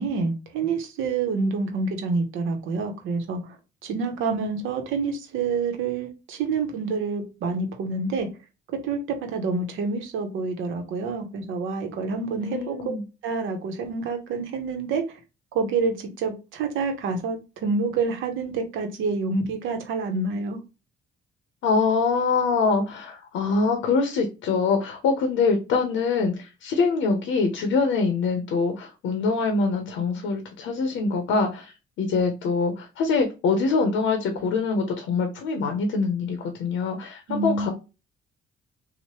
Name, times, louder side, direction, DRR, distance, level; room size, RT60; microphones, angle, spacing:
voice 1, 0.0-3.6 3.8-8.3 8.8-12.9 13.2-15.2 15.5-20.6 37.3-37.7, right 4 dB, 80° right, 0.7 m, -27 dB
voice 2, 12.4-13.0 21.6-37.7, left 4 dB, 80° left, 0.6 m, -24 dB
3.0 x 2.1 x 2.9 m
cardioid pair, 90°, 20 cm